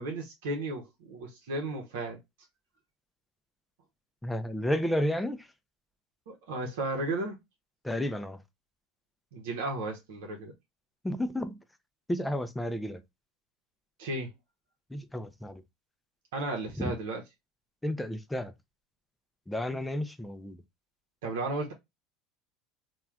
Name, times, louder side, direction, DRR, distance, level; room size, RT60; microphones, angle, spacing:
voice 1, 0.0-2.2 6.3-7.4 9.3-10.5 14.0-14.3 16.3-17.2 21.2-21.7, right 2 dB, 85° right, 0.8 m, -34 dB
voice 2, 4.2-5.5 7.8-8.4 11.0-11.6 12.1-13.0 14.9-15.6 16.8-16.9 17.8-18.5 19.5-20.6, left 1 dB, 5° left, 0.4 m, -31 dB
3.2 x 2.3 x 2.2 m
supercardioid pair, 115°, 0 cm